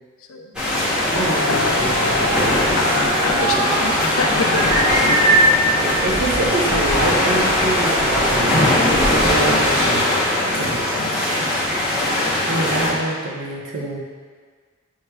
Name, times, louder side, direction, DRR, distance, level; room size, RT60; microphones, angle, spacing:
sound 1, 0.5-12.9, left 1 dB, 5° right, 0.8 m, -20 dB
Female singing, 0.9-6.1, left 2 dB, 80° left, 0.7 m, -31 dB
voice 1, 1.1-2.1 5.8-8.5 9.1-10.1 10.4-11.0 11.6-12.0 12.5-14.0, right 2 dB, 65° right, -2 dB, 0.7 m, -26 dB
sound 2, 1.5-9.9, right 1 dB, 20° right, 1.1 m, -23 dB
voice 2, 2.8-5.2 5.6-5.9 6.2-6.4 11.0-11.3, left 4 dB, 65° left, 2 dB, 0.4 m, -27 dB
5.7 x 3.1 x 2.2 m, 1.6 s
head